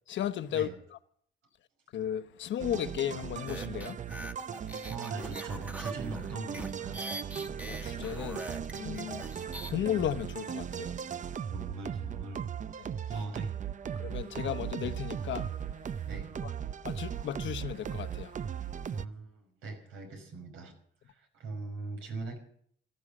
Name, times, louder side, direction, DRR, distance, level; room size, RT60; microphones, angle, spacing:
voice 1, 0.1-0.7 1.9-4.0 7.7-8.4 8.7-9.3 9.7-10.9 14.0-15.5 16.4-16.5 16.8-18.3, left 10 dB, 70° left, 1.1 m, -34 dB
sound 1, 2.6-19.1, right 8 dB, 40° right, 0.6 m, -38 dB
sound 2, 3.5-9.7, right 1 dB, 5° right, 1.4 m, -43 dB
voice 2, 4.9-7.0 11.1-12.5 13.1-13.6 16.1-16.3 18.9-20.7 21.0-22.4, right 3 dB, 85° right, 5.5 m, -41 dB
15.5 x 13.5 x 6.4 m
cardioid pair, 90°, 20 cm